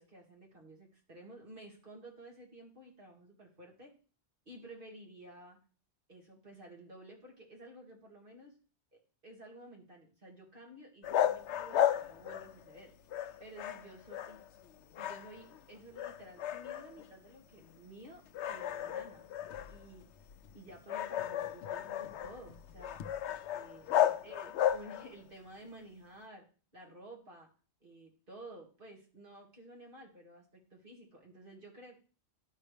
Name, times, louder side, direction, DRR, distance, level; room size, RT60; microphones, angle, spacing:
voice 1, 0.0-3.9 4.5-5.6 6.1-8.6 8.9-12.9 13.4-14.4 15.0-19.3 19.7-20.1 20.5-23.0 23.5-26.4 26.7-27.5 27.8-32.0, right 1 dB, 50° right, 0 dB, 2.5 m, -53 dB
sound 1, 11.0-12.8 13.1-14.7 14.9-15.6 15.9-17.1 17.6-17.8 18.3-25.2, left 11 dB, 75° left, 0.9 m, -34 dB
11.5 x 5.8 x 3.4 m, 0.37 s
omnidirectional pair, 1.2 m